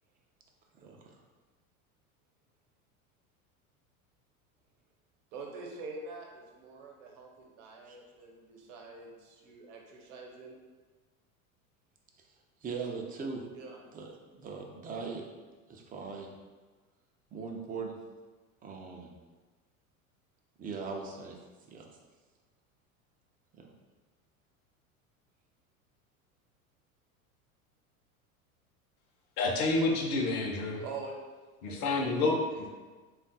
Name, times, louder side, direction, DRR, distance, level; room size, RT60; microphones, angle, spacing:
voice 1, 5.3-10.5 13.5-13.8 30.8-31.2 31.6-32.2 32.5-32.7, right 4 dB, 55° right, 1 dB, 1.0 m, -45 dB
voice 2, 12.6-13.4 13.9-14.1 14.3-15.2 15.7-16.3 17.3-18.0 18.6-19.1 20.6-21.4 21.7-21.9 23.6-23.7, right 5 dB, 20° right, 1 dB, 0.5 m, -39 dB
voice 3, 29.4-30.8 31.6-32.6, left 3 dB, 40° left, 0 dB, 0.8 m, -29 dB
3.5 x 2.4 x 4.0 m, 1.3 s
hypercardioid pair, 85°, 44 cm